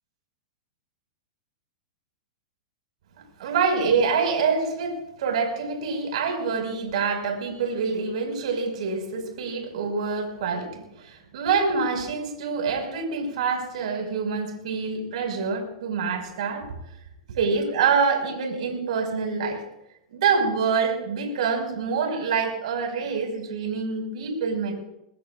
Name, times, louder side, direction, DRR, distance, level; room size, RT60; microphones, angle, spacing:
voice 1, 3.4-16.7 17.3-19.6 20.1-24.7, right 5 dB, 70° right, 2 dB, 5.8 m, -26 dB
22.0 x 20.5 x 2.6 m, 0.86 s
hypercardioid pair, 120°, 4 cm